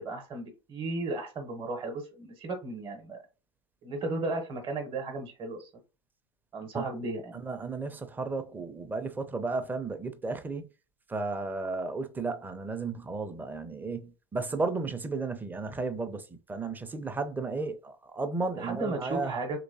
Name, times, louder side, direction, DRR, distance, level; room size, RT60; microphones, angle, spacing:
voice 1, 0.0-3.2 3.8-5.7 6.5-7.4 18.6-19.6, right 2 dB, 30° right, 0.9 m, -35 dB
voice 2, 7.3-10.7 11.1-19.3, right 3 dB, 10° right, 0.5 m, -34 dB
3.1 x 3.0 x 2.7 m
hypercardioid pair, 90°, 16 cm